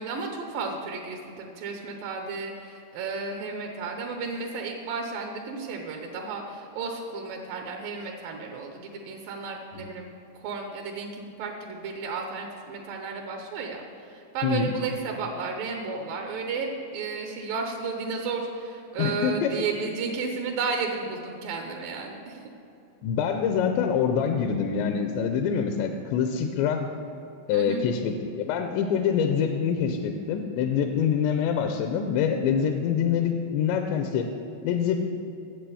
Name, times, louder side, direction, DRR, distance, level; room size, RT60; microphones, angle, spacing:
voice 1, 0.0-10.1 10.4-22.4 27.5-27.8, right 4 dB, 85° right, 2 dB, 1.9 m, -33 dB
voice 2, 19.0-19.5 23.0-26.8 27.5-34.3 34.6-35.0, left 7 dB, 80° left, 5 dB, 2.7 m, -25 dB
10.0 x 7.9 x 7.0 m, 2.9 s
omnidirectional pair, 5.3 m